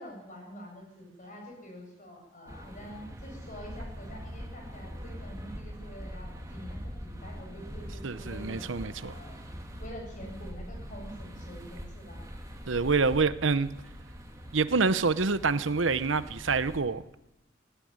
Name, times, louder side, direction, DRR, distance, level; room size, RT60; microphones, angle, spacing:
voice 1, 0.0-9.4 9.8-12.2, equal, 40° left, 8.0 m, -46 dB
sound 1, 2.5-16.8, equal, 20° right, 2.9 m, -43 dB
voice 2, 8.0-9.1 12.7-13.7 14.5-17.0, right 4 dB, 85° right, 0.9 m, -26 dB
17.5 x 17.0 x 9.6 m
head